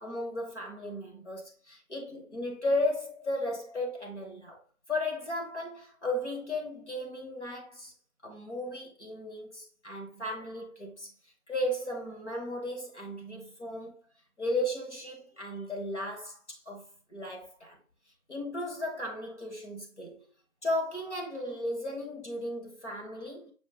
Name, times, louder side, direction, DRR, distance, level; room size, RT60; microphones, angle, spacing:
voice 1, 0.0-4.6 4.9-7.9 8.2-11.1 11.5-14.0 14.4-16.8 17.1-17.8 18.3-20.2 20.6-23.5, left 1 dB, 55° left, 1.4 m, -35 dB
6.1 x 2.2 x 3.5 m
figure-of-eight pair, 170°, 42 cm